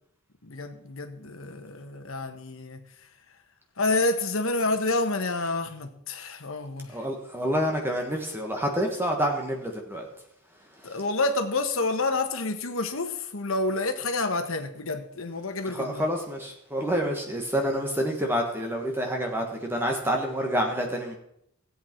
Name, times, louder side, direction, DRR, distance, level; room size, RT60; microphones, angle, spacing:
voice 1, 0.4-2.9 3.8-7.0 10.8-16.1, left 2 dB, 65° left, 1.3 m, -28 dB
voice 2, 6.9-10.1 15.7-21.2, equal, 10° right, 1.3 m, -28 dB
16.5 x 8.3 x 4.5 m
head